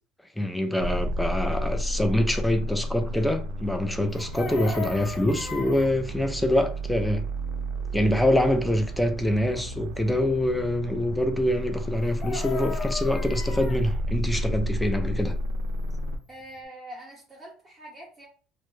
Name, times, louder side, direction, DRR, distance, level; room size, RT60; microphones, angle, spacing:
voice 1, 0.4-7.2 7.9-15.3, left 1 dB, 5° left, 0.4 m, -25 dB
sound 1, 0.8-16.2, equal, 85° right, 0.4 m, -31 dB
Chicken rooster, 4.1-5.9 12.0-13.8 16.0-16.1 16.4-16.6, left 5 dB, 30° left, 0.7 m, -36 dB
voice 2, 16.3-18.3, right 1 dB, 25° right, 0.9 m, -44 dB
2.1 x 2.0 x 3.0 m
supercardioid pair, 100°, 0 cm